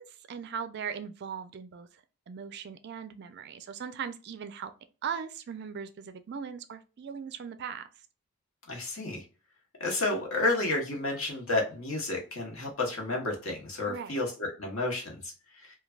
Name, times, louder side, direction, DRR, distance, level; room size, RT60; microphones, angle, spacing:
voice 1, 0.0-4.7 5.0-7.9 13.9-14.2, right 7 dB, 50° right, 0.3 m, -39 dB
voice 2, 8.7-9.2 9.8-15.8, left 2 dB, 60° left, 1.0 m, -31 dB
3.2 x 2.3 x 2.3 m
head